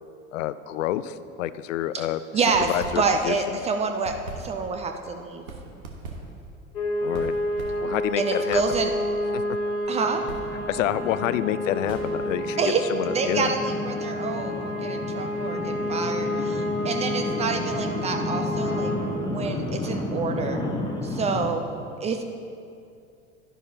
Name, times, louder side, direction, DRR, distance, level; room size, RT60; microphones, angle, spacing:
voice 1, 0.3-3.6 7.0-7.3 7.8-8.6 9.3-9.4 10.7-12.6 12.9-13.5, left 12 dB, 65° left, 15 dB, 0.5 m, -28 dB
voice 2, 2.3-2.7 3.0-5.4 8.2-8.9 9.9-10.2 12.6-12.8 13.1-18.9 19.2-20.6 21.0-21.6 22.0-22.2, right 4 dB, 15° right, 5 dB, 0.4 m, -27 dB
sound 1, 2.5-3.5 3.8-12.4, right 3 dB, 80° right, 1.4 m, -41 dB
sound 2, 6.7-19.0, left 1 dB, 80° left, 2.4 m, -29 dB
sound 3, 10.0-21.5, left 2 dB, 10° left, 0.9 m, -33 dB
11.5 x 11.0 x 2.8 m, 2.5 s
figure-of-eight pair, 80°, 43 cm